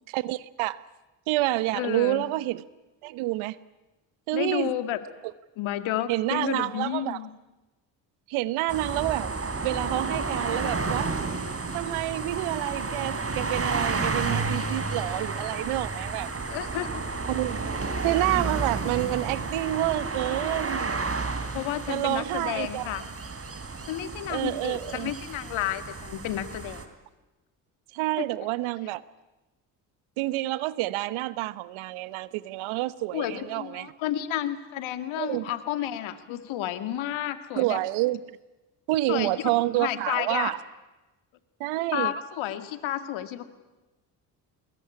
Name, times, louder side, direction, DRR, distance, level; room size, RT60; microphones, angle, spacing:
voice 1, 0.1-0.8 1.3-2.6 3.0-3.6 4.3-4.7 6.1-7.2 8.3-9.3 9.6-11.1 11.7-16.3 17.3-17.7 18.0-21.0 21.9-23.0 24.3-25.1 27.9-29.0 30.2-33.9 35.2-35.5 37.6-38.2 38.9-40.6 41.6-42.1, right 17 dB, 70° right, 17 dB, 1.1 m, -28 dB
voice 2, 1.7-2.2 4.3-5.0 5.6-7.3 16.5-17.0 21.5-23.0 23.9-26.8 28.2-28.3 33.1-37.8 39.1-39.5 39.8-40.5 41.9-43.5, left 12 dB, 70° left, 10 dB, 2.2 m, -31 dB
sound 1, 8.7-26.8, right 4 dB, 30° right, 3.5 m, -31 dB
23.5 x 20.5 x 10.0 m, 1.1 s
hypercardioid pair, 55°, 49 cm